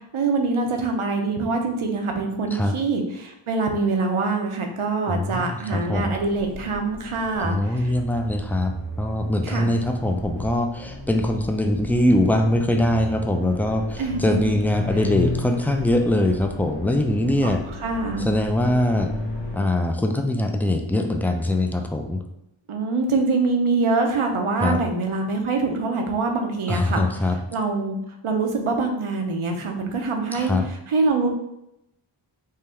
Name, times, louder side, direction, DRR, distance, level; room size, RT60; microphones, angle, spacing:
voice 1, 0.1-7.9 9.4-9.8 14.0-14.5 17.8-18.3 22.7-27.0 27.5-28.0 28.2-30.5 30.9-31.3, right 3 dB, 75° right, 3 dB, 0.8 m, -24 dB
voice 2, 5.1-6.2 7.4-17.6 18.2-19.1 19.5-22.2 24.6-24.8 26.7-27.4 30.3-30.7, left 1 dB, 5° left, 4 dB, 0.5 m, -22 dB
sound 1, 5.9-19.6, left 2 dB, 50° left, 1.2 m, -34 dB
3.8 x 2.6 x 4.3 m, 0.82 s
cardioid pair, 45°, 50 cm